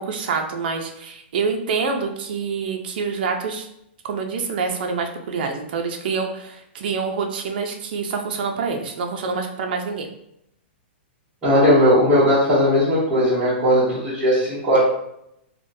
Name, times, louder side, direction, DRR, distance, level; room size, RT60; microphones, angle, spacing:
voice 1, 0.0-3.7 4.0-10.1, right 5 dB, 55° right, 3 dB, 0.4 m, -26 dB
voice 2, 11.4-14.8, equal, 15° right, -13 dB, 0.9 m, -17 dB
3.5 x 2.1 x 2.6 m, 0.77 s
hypercardioid pair, 165°, 6 cm